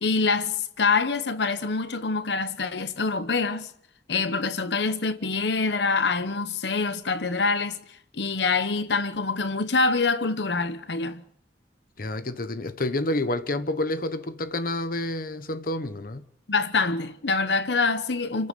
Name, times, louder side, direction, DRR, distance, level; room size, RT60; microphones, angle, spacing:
voice 1, 0.0-3.7 4.1-11.2 16.5-18.5, left 4 dB, 75° left, 1.1 m, -25 dB
voice 2, 12.0-16.2, left 1 dB, 55° left, 1.1 m, -29 dB
29.5 x 15.0 x 6.8 m
head